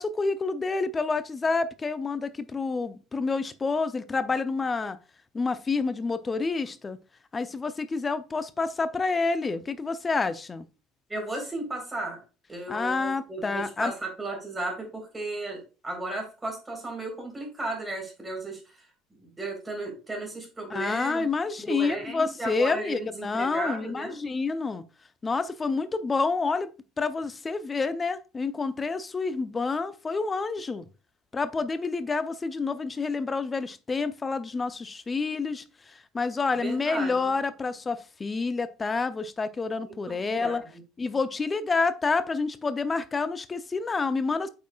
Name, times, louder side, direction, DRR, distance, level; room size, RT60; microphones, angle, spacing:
voice 1, 0.0-5.0 5.3-7.0 7.3-10.7 12.7-13.9 20.7-24.8 25.2-26.7 27.0-30.8 31.3-40.6 41.0-44.5, left 4 dB, 25° left, 0.7 m, -28 dB
voice 2, 11.1-12.2 12.5-18.9 19.2-21.3 21.6-24.1 36.5-37.3 39.8-40.7, right 2 dB, 15° right, 3.9 m, -35 dB
8.3 x 5.9 x 2.4 m
figure-of-eight pair, 65°, 0 cm